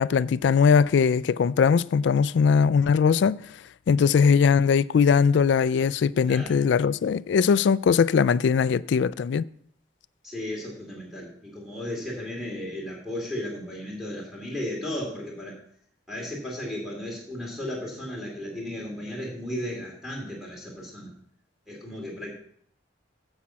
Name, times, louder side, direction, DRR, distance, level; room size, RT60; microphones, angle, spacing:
voice 1, 0.0-3.4 3.9-9.4, left 6 dB, 65° left, 0.3 m, -20 dB
voice 2, 6.3-6.6 10.2-15.6 16.1-21.1 21.7-22.3, left 1 dB, ahead, 2.5 m, -35 dB
9.9 x 5.7 x 7.4 m
head